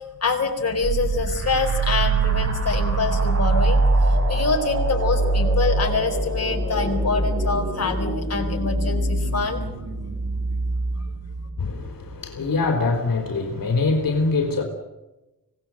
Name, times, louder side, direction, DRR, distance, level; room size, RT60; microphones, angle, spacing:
voice 1, 0.2-9.6, left 4 dB, 45° left, 2 dB, 4.4 m, -25 dB
sound 1, 0.8-12.2, right 2 dB, 45° right, 6.2 m, -23 dB
voice 2, 11.6-14.6, left 3 dB, 75° left, 3 dB, 3.8 m, -23 dB
25.5 x 18.5 x 7.8 m, 1.0 s
wide cardioid pair, 120°, 34 cm